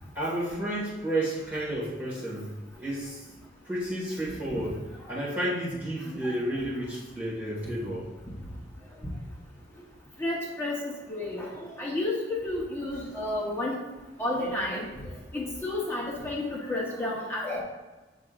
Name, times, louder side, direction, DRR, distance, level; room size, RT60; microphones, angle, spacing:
voice 1, 0.2-2.5 2.8-3.2 3.7-8.1, right 1 dB, 10° right, -8 dB, 2.0 m, -31 dB
voice 2, 10.2-10.8 11.1-12.2 12.4-13.8 14.2-15.1 15.3-17.6, left 1 dB, 15° left, -4 dB, 1.1 m, -31 dB
6.7 x 6.0 x 2.6 m, 1.2 s
head